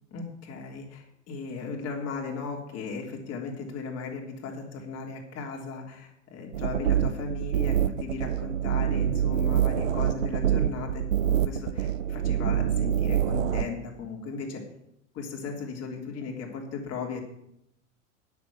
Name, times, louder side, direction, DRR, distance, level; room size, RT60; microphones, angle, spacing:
voice 1, 0.1-14.6 15.1-17.2, left 5 dB, 40° left, 0 dB, 3.4 m, -36 dB
sound 1, 6.5-13.6, right 10 dB, 85° right, 0.7 m, -26 dB
10.0 x 7.2 x 8.2 m, 0.79 s
figure-of-eight pair, 85°, 38 cm